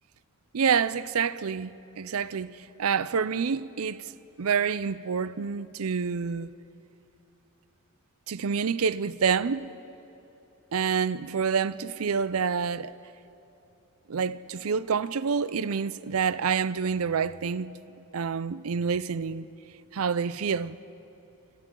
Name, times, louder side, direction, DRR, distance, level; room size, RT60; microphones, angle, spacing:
voice 1, 0.5-1.7 2.0-2.5 2.8-6.5 8.3-9.7 10.7-13.0 14.1-17.7 18.1-19.5 19.9-20.8, right 6 dB, 75° right, 0.5 m, -27 dB
27.5 x 27.0 x 3.8 m
head